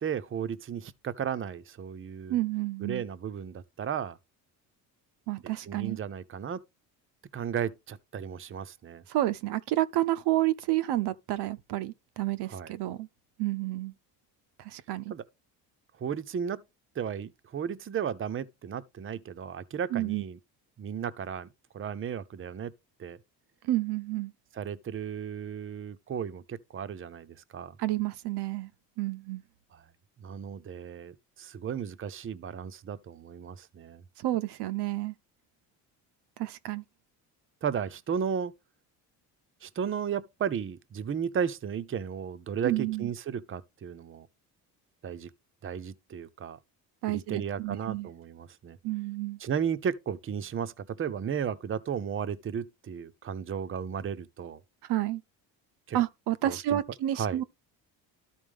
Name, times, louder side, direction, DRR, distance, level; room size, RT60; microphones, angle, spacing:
voice 1, 0.0-2.4 2.8-4.2 5.7-6.6 7.3-9.0 12.5-12.7 15.1-15.3 16.0-16.6 16.9-20.4 20.8-21.5 21.7-22.7 23.0-23.2 24.5-27.8 29.7-29.9 30.2-34.0 37.6-38.5 39.6-44.3 45.0-45.3 45.6-46.6 47.1-48.8 49.4-54.6 55.9-56.0 56.4-56.8 57.2-57.4, right 7 dB, 30° right, 0.7 m, -34 dB
voice 2, 2.3-3.0 5.3-6.0 9.1-13.1 13.4-13.9 14.6-15.1 19.9-20.2 23.6-24.3 27.8-28.7 29.0-29.4 34.2-35.1 36.4-36.8 42.6-43.1 47.0-48.1 48.8-49.4 54.8-55.2 55.9-57.4, right 15 dB, 70° right, 0.8 m, -30 dB
13.0 x 4.3 x 3.5 m
cardioid pair, 95°, 43 cm